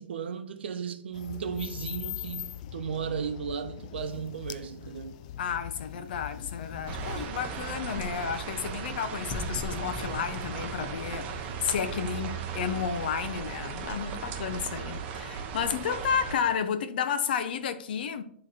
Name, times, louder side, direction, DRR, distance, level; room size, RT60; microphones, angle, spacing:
voice 1, 0.0-5.2, right 7 dB, 75° right, 0.8 m, -35 dB
sound 1, 1.1-7.3, left 11 dB, 40° left, 0.4 m, -41 dB
voice 2, 5.4-18.2, left 7 dB, 55° left, 0.8 m, -32 dB
sound 2, 6.7-12.4, left 2 dB, 15° left, 1.0 m, -42 dB
sound 3, 6.9-16.3, right 6 dB, 25° right, 0.7 m, -37 dB
9.5 x 3.3 x 4.3 m
hypercardioid pair, 165°, 6 cm